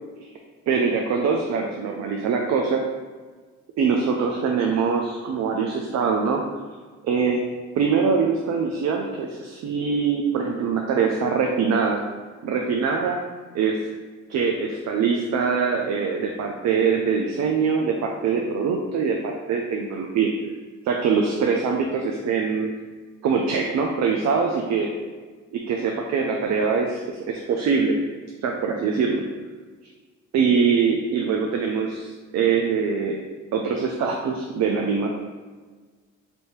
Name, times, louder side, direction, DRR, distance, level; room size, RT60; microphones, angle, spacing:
voice 1, 0.7-2.8 3.8-6.4 7.0-7.4 7.8-12.0 12.4-13.2 13.5-13.8 14.3-20.3 20.8-22.7 23.2-24.9 25.5-28.0 28.4-29.2 30.3-33.2 33.5-35.1, right 5 dB, 60° right, 2 dB, 0.5 m, -23 dB
3.4 x 2.7 x 4.4 m, 1.4 s
cardioid pair, 90°, 30 cm